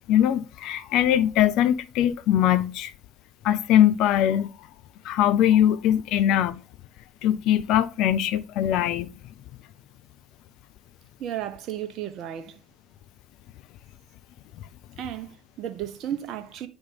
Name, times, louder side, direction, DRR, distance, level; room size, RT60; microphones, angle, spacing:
voice 1, 0.1-2.9 3.4-4.5 5.0-6.6 7.2-9.1, left 11 dB, 60° left, 0.4 m, -21 dB
voice 2, 11.2-12.6 15.0-16.7, right 10 dB, 55° right, 0.8 m, -34 dB
9.3 x 3.5 x 3.9 m
hypercardioid pair, 60°, 0 cm